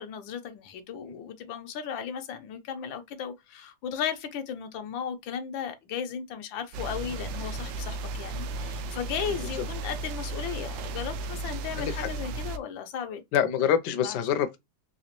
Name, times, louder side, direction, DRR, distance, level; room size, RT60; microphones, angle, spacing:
voice 1, 0.0-13.2 14.0-14.2, left 8 dB, 85° left, 1.5 m, -36 dB
sound 1, 6.7-12.6, right 2 dB, 80° right, 1.3 m, -35 dB
voice 2, 11.7-12.1 13.3-14.6, left 9 dB, 70° left, 1.2 m, -26 dB
4.0 x 2.8 x 2.9 m
omnidirectional pair, 2.0 m